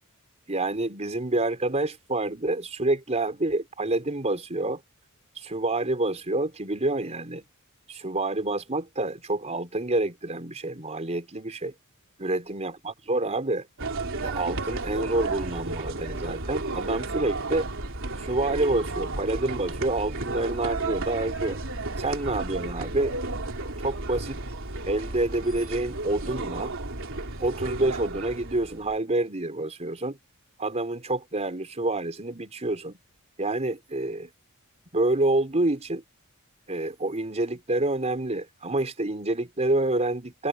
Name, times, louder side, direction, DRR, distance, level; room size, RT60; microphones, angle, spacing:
voice 1, 0.5-4.8 5.4-7.4 7.9-11.7 12.2-13.7 14.2-17.7 18.2-21.6 22.0-23.1 23.8-24.4 24.9-26.7 27.4-30.2 30.6-33.0 33.4-34.3 34.9-36.0 36.7-40.5, right 2 dB, 30° right, 4.0 m, -28 dB
sound 1, 13.8-29.0, right 2 dB, 65° right, 3.6 m, -33 dB
head